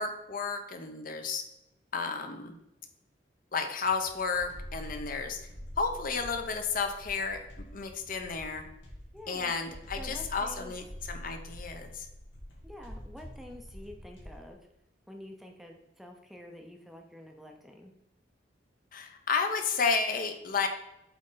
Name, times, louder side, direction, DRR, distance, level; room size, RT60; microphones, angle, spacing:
voice 1, 0.0-1.4 1.9-2.5 3.5-5.4 5.8-7.5 7.7-8.6 9.3-12.1 18.9-20.7, left 5 dB, 45° left, 5 dB, 0.7 m, -32 dB
sound 1, 3.8-14.5, equal, 90° left, 2.2 m, -46 dB
voice 2, 9.1-9.5 10.0-10.7 12.6-14.6 15.1-17.9, left 1 dB, ahead, 2 dB, 0.6 m, -48 dB
8.0 x 3.8 x 3.8 m, 0.91 s
head